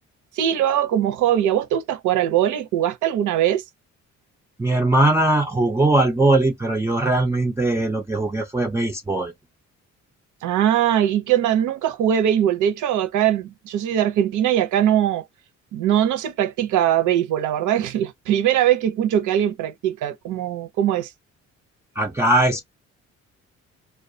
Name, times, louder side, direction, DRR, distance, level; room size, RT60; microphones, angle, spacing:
voice 1, 0.3-3.6 10.4-15.2 15.7-21.1, right 10 dB, 80° right, 0.6 m, -21 dB
voice 2, 4.6-9.3 22.0-22.6, right 2 dB, 10° right, 0.4 m, -20 dB
2.2 x 2.2 x 2.6 m
cardioid pair, 90°, 30 cm